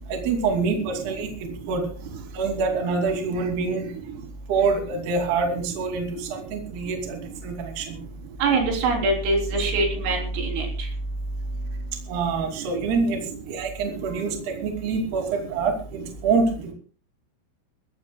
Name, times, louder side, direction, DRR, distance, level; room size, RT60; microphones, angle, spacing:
voice 1, 0.1-1.9 2.3-3.9 4.5-8.0 12.1-13.2 13.5-16.7, right 4 dB, 55° right, 3 dB, 4.3 m, -26 dB
voice 2, 8.4-10.7, right 3 dB, 80° right, 1 dB, 6.2 m, -23 dB
22.0 x 16.0 x 2.3 m, 0.40 s
omnidirectional pair, 5.8 m